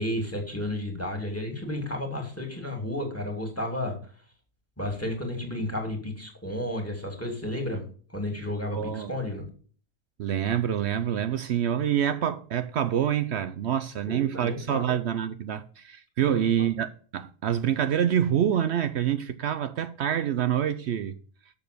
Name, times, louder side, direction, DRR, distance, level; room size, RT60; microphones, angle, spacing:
voice 1, 0.0-3.9 4.8-7.8 8.1-9.5 14.0-15.0 16.2-16.5, left 1 dB, 10° left, 2.5 m, -32 dB
voice 2, 8.7-9.1 10.2-21.1, right 9 dB, 90° right, 0.5 m, -26 dB
7.1 x 6.7 x 6.7 m
omnidirectional pair, 1.8 m